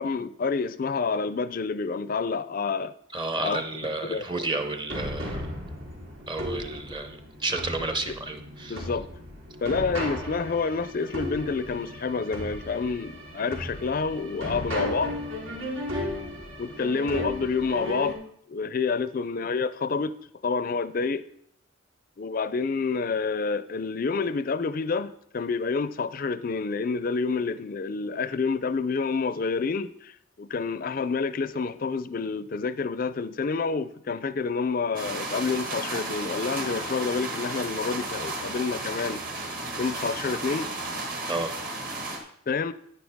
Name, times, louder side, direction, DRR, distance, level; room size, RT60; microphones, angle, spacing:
voice 1, 0.0-2.9 3.4-3.6 4.0-4.5 8.7-9.1 9.6-15.1 16.6-18.2 18.5-20.2 20.4-21.2 22.2-39.2 39.8-40.7 42.5-42.7, left 4 dB, 45° left, 0.4 m, -28 dB
voice 2, 3.1-5.4 6.3-8.8 41.3-41.5, right 2 dB, 25° right, 0.7 m, -31 dB
sound 1, 4.9-18.1, equal, 85° right, 2.7 m, -35 dB
sound 2, 34.9-42.2, right 2 dB, 45° right, 1.6 m, -33 dB
10.0 x 9.4 x 3.5 m
head